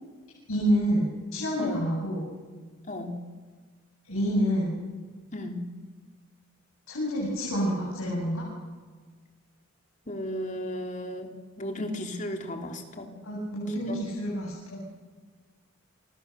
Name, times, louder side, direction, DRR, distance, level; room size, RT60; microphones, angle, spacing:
voice 1, 0.5-2.3 4.1-4.8 6.9-8.5 13.2-14.8, equal, 85° left, -4 dB, 7.6 m, -28 dB
voice 2, 5.3-5.6 10.1-11.3 11.6-13.1 13.9-14.0, left 1 dB, 35° left, 3 dB, 3.0 m, -34 dB
29.0 x 25.5 x 6.8 m, 1.4 s
head